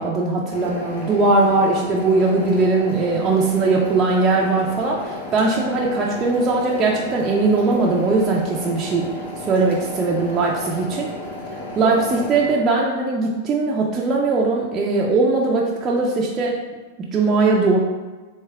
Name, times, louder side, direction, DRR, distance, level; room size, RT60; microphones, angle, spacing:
voice 1, 0.0-9.1 9.4-11.1 11.8-16.6 17.0-17.8, right 3 dB, 25° right, -3 dB, 0.4 m, -20 dB
sound 1, 0.5-12.5, left 2 dB, 90° left, 1.1 m, -33 dB
3.4 x 2.8 x 3.3 m, 1.3 s
supercardioid pair, 145°, 0 cm